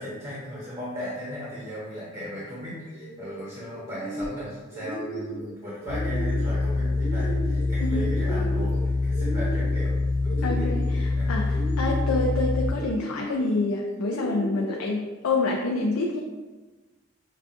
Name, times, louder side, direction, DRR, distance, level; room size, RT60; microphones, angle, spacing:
voice 1, 0.0-10.7 11.1-11.4, equal, 30° right, -9 dB, 0.9 m, -37 dB
sound 1, 2.9-3.4 3.8-4.4 4.7-5.5 5.8-6.5 6.9-7.7 8.0-8.8 9.1-9.9 10.2-11.0 11.5-12.2 12.7-13.4 14.0-14.8, right 1 dB, 60° left, 0.9 m, -35 dB
sound 2, 5.9-12.7, left 3 dB, 75° right, 0.6 m, -25 dB
voice 2, 7.8-8.1 10.4-16.2, left 2 dB, 85° left, 0 dB, 0.4 m, -27 dB
5.6 x 2.4 x 2.4 m, 1.2 s
head